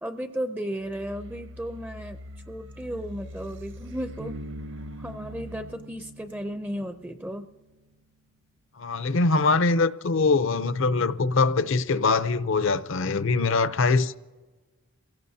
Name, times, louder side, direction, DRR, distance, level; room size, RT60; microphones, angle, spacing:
voice 1, 0.0-2.2 2.5-4.3 5.0-7.5, equal, 10° right, 0.4 m, -34 dB
sound 1, 0.8-5.7, left 1 dB, 55° right, 0.8 m, -43 dB
Bass guitar, 4.2-7.9, right 2 dB, 85° right, 3.7 m, -43 dB
voice 2, 8.8-14.1, left 3 dB, 65° left, 0.6 m, -23 dB
28.5 x 17.0 x 2.7 m
head